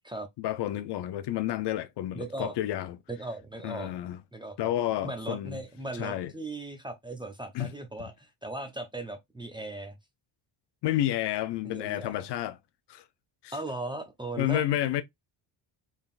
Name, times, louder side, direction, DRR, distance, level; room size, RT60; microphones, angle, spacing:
voice 1, 0.4-3.0 3.6-4.2 4.6-5.6 6.0-6.3 7.5-7.7 10.8-12.6 12.9-13.0 13.4-13.5 14.4-15.0, left 13 dB, 55° left, 0.6 m, -30 dB
voice 2, 2.1-2.5 3.1-3.9 4.3-4.6 5.0-10.0 11.6-12.2 13.5-14.6, right 2 dB, 10° right, 0.5 m, -37 dB
3.9 x 3.6 x 2.4 m
cardioid pair, 160°, 49 cm